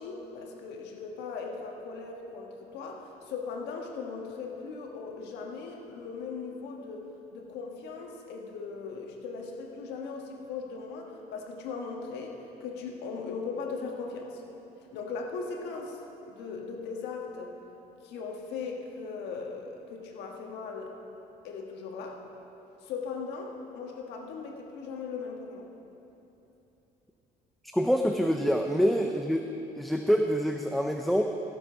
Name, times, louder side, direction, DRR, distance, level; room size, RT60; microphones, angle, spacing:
voice 1, 0.0-7.0 7.3-14.4 14.9-16.0 16.3-17.5 18.0-20.9 21.4-22.2 22.8-25.7 28.7-28.9, left 4 dB, 90° left, 1 dB, 1.5 m, -38 dB
voice 2, 27.7-29.5 29.8-31.2, equal, ahead, 3 dB, 0.5 m, -26 dB
14.5 x 7.1 x 5.6 m, 2.9 s
cardioid pair, 110°, 17 cm